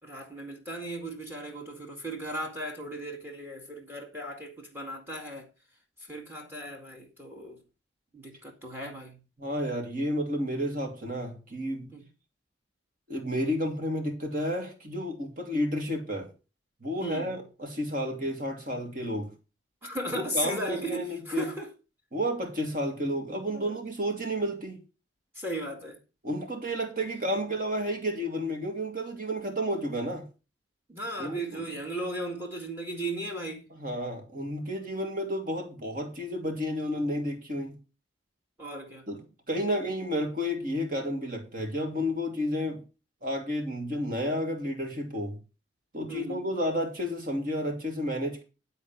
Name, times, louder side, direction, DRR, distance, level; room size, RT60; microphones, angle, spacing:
voice 1, 0.0-5.5 6.0-7.6 8.1-9.2 11.9-12.1 17.0-17.3 19.8-21.7 23.5-23.8 25.3-26.0 30.9-33.7 38.6-39.1 46.1-46.5, right 1 dB, 10° right, 2.1 m, -36 dB
voice 2, 9.4-11.9 13.1-16.3 16.8-19.3 20.3-21.5 22.1-24.8 26.2-30.2 31.2-31.4 33.8-37.8 39.1-39.2 39.5-42.8 43.2-45.4 45.9-48.4, equal, 45° right, 2.8 m, -31 dB
11.0 x 4.3 x 7.1 m
head